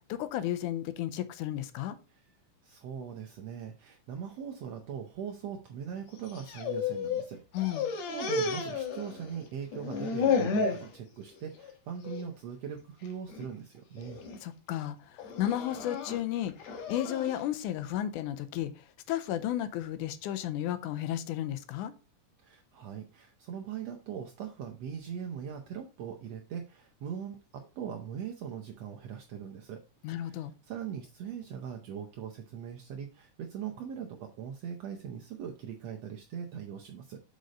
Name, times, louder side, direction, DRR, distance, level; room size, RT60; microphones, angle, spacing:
voice 1, 0.1-2.0 7.5-7.9 14.4-16.5 16.9-18.7 19.1-21.9 30.0-30.5, left 12 dB, 80° left, 12 dB, 2.1 m, -33 dB
voice 2, 2.6-7.6 8.1-14.2 22.4-29.8 30.1-37.2, right 8 dB, 75° right, 2 dB, 1.6 m, -41 dB
sound 1, 6.2-7.3 7.5-9.4 9.7-10.9 11.3-11.7 12.0-12.2 13.1-13.5 14.0-14.4 15.2-17.4, left 5 dB, 65° left, 2.2 m, -32 dB
6.5 x 5.2 x 4.1 m, 0.32 s
omnidirectional pair, 3.7 m